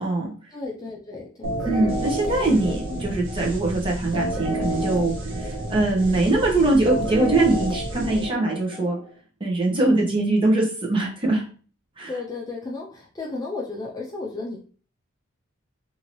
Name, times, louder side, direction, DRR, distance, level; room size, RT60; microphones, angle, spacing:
voice 1, 0.0-0.3 1.6-5.1 5.4-9.0 9.4-11.4 12.0-12.1, right 2 dB, 25° right, -2 dB, 0.8 m, -22 dB
voice 2, 0.5-1.9 2.3-3.1 9.8-10.2 12.1-14.6, left 3 dB, 20° left, -3 dB, 0.4 m, -34 dB
sound 1, 1.4-9.1, right 1 dB, 60° right, 0.7 m, -29 dB
2.8 x 2.6 x 2.9 m, 0.40 s
head